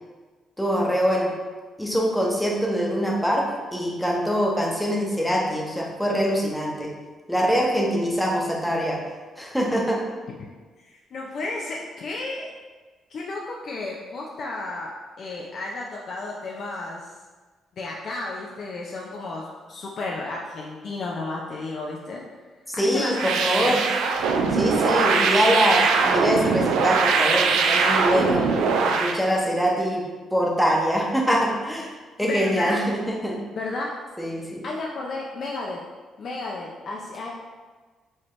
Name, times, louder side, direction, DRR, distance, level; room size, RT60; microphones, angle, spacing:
voice 1, 0.6-1.3 1.8-6.9 7.3-9.0 9.4-10.0 22.8-23.8 24.5-28.5 28.8-30.0 30.3-31.9 32.2-33.4 34.2-34.6, equal, 5° left, -2 dB, 0.9 m, -23 dB
voice 2, 10.8-12.5 13.1-17.1 17.8-22.2 22.7-23.8 31.9-32.8 33.6-33.9 34.6-35.8 36.2-37.3, left 2 dB, 55° left, -2 dB, 0.5 m, -32 dB
sound 1, 23.1-29.2, right 5 dB, 85° right, 0.3 m, -21 dB
4.8 x 2.8 x 3.1 m, 1.4 s
cardioid pair, 90°, 0 cm